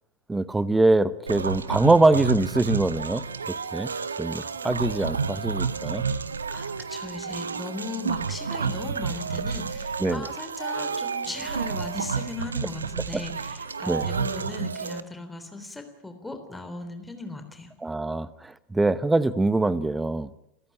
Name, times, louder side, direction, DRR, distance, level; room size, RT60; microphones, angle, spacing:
voice 1, 0.3-3.9 4.2-6.0 10.0-10.3 13.1-13.2 13.9-14.1 17.8-20.3, right 2 dB, 10° right, 18 dB, 1.0 m, -23 dB
sound 1, 1.3-15.0, right 5 dB, 75° right, 1.0 m, -30 dB
voice 2, 6.5-17.7, left 3 dB, 5° left, 7 dB, 3.6 m, -37 dB
29.0 x 14.5 x 10.0 m, 0.83 s
figure-of-eight pair, 90°, 0 cm